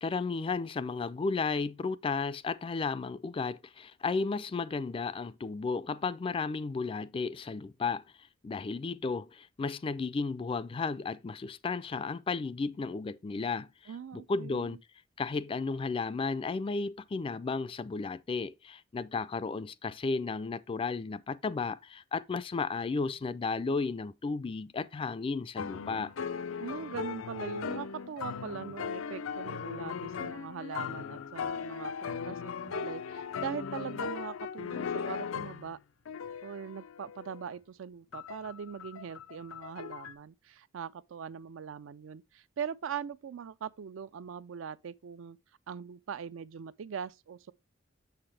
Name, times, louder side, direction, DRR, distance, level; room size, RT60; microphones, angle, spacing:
voice 1, 0.0-8.0 8.4-13.7 14.1-14.8 15.2-26.1, left 4 dB, 25° left, 0.3 m, -33 dB
voice 2, 13.9-14.8 26.6-35.8 36.4-45.4 45.7-47.5, right 7 dB, 75° right, 0.4 m, -41 dB
sound 1, 25.6-35.7 36.1-37.5 38.1-40.1, left 6 dB, 85° left, 0.5 m, -38 dB
6.8 x 5.8 x 3.3 m
head